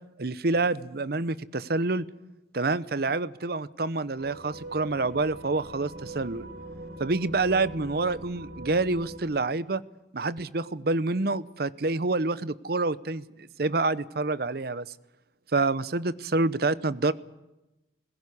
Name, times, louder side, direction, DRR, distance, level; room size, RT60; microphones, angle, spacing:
voice 1, 0.2-2.0 2.5-6.5 7.0-9.8 10.1-13.2 13.6-14.9 15.5-17.1, right 3 dB, 55° right, 18 dB, 0.8 m, -27 dB
sound 1, 4.2-9.2, right 2 dB, 85° right, 3.4 m, -42 dB
20.0 x 17.0 x 9.9 m, 0.99 s
head